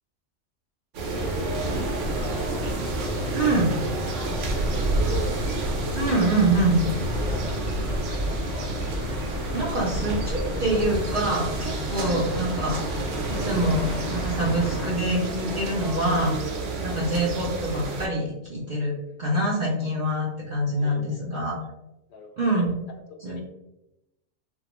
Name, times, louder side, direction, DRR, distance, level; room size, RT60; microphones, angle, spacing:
sound 1, 0.9-18.1, right 2 dB, 85° right, 0.9 m, -29 dB
sound 2, 1.1-14.9, equal, 90° left, 0.9 m, -34 dB
voice 1, 2.1-2.7 3.0-3.8 4.1-5.4 6.5-6.6 6.8-8.7 12.0-12.2 16.8-17.0 19.0-19.2 20.8-21.2 22.1-22.7 23.2-23.4, left 4 dB, 60° left, 2 dB, 0.6 m, -41 dB
voice 2, 3.3-3.7 5.9-6.8 9.5-12.8 13.3-16.3 16.8-21.6 22.4-22.7 23.2-23.4, right 1 dB, 55° right, -5 dB, 0.6 m, -25 dB
2.3 x 2.2 x 2.9 m, 0.90 s
omnidirectional pair, 1.2 m